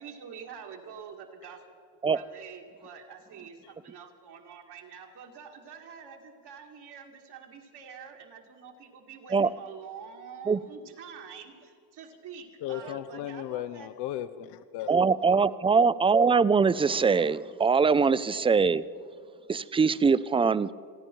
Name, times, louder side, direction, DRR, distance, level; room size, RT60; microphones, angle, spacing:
voice 1, 0.0-1.6 2.1-11.6 11.9-13.9, right 7 dB, 75° right, 2 dB, 2.2 m, -46 dB
voice 2, 12.6-14.9, left 12 dB, 80° left, 12 dB, 0.7 m, -36 dB
voice 3, 14.9-18.8 19.5-20.7, right 5 dB, 15° right, 17 dB, 0.3 m, -22 dB
30.0 x 10.5 x 4.6 m, 2.3 s
cardioid pair, 85°, 41 cm